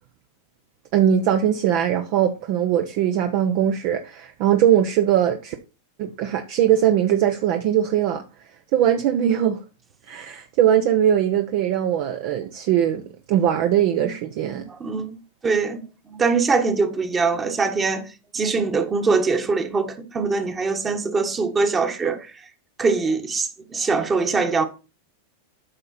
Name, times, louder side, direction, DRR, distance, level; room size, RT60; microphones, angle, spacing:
voice 1, 0.9-5.6 6.0-8.2 8.7-9.6 10.1-13.0 13.3-14.7, right 10 dB, 55° right, 0.8 m, -20 dB
voice 2, 14.8-15.2 15.4-18.1 18.3-22.3 22.8-24.6, right 4 dB, 20° right, 1.3 m, -22 dB
8.9 x 5.4 x 4.3 m
hypercardioid pair, 120°, 0 cm